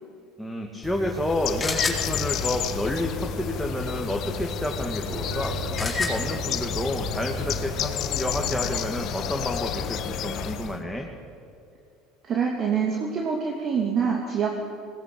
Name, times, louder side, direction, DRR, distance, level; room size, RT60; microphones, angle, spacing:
voice 1, 0.4-11.1, left 1 dB, 5° left, 0 dB, 2.3 m, -30 dB
sound 1, 0.8-7.6, left 1 dB, 20° left, 4.3 m, -34 dB
Bird, 1.1-10.8, left 10 dB, 55° left, 1.3 m, -31 dB
Race car auto racing, 5.1-10.6, right 2 dB, 75° right, 5.3 m, -38 dB
voice 2, 12.2-14.5, right 6 dB, 45° right, 0 dB, 2.7 m, -25 dB
20.0 x 18.0 x 8.7 m, 2.5 s
hypercardioid pair, 80°, 0 cm